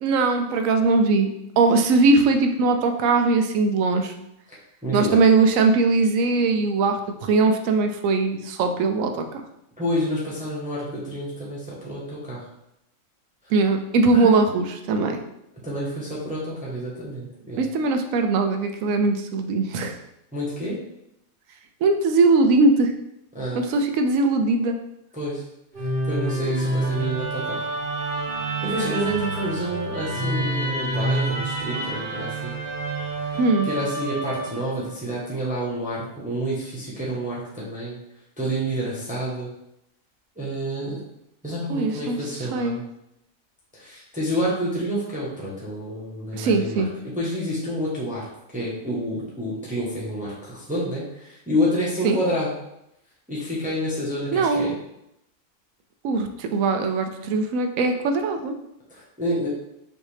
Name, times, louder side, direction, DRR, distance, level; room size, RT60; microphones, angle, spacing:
voice 1, 0.0-1.3 1.6-4.1 4.9-9.4 13.5-15.2 17.6-20.0 21.8-22.9 23.6-24.8 33.4-33.7 41.7-42.2 42.5-42.8 46.3-46.9 52.0-52.2 54.3-54.7 56.0-58.5, right 3 dB, 80° right, 6 dB, 1.0 m, -20 dB
voice 2, 4.8-5.2 9.8-12.4 13.4-13.5 14.1-14.4 15.6-17.6 20.3-20.8 23.3-23.6 25.1-25.4 25.8-27.7 28.6-32.6 33.2-38.0 38.4-39.5 40.4-41.0 41.4-42.9 43.7-48.3 48.5-52.5 53.3-54.7 58.9-59.5, equal, 5° right, -7 dB, 0.9 m, -28 dB
Musical instrument, 25.7-35.0, right 2 dB, 50° right, 0.8 m, -28 dB
5.4 x 2.6 x 3.3 m, 0.82 s
omnidirectional pair, 1.4 m